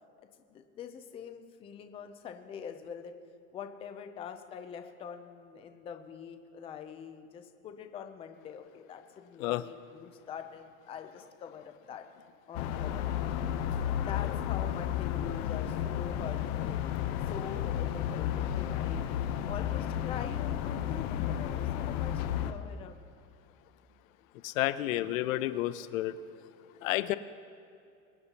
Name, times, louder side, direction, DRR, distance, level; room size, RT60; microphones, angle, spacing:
voice 1, 0.2-3.1 3.5-12.1 12.5-13.3 13.9-16.8 17.3-19.1 19.4-23.0, left 8 dB, 15° left, 7 dB, 0.5 m, -44 dB
sound 1, 12.5-22.5, left 10 dB, 50° left, 0.9 m, -32 dB
voice 2, 24.4-26.1 26.8-27.2, left 15 dB, 75° left, 14 dB, 0.7 m, -30 dB
24.0 x 9.5 x 2.9 m, 2.5 s
supercardioid pair, 150°, 41 cm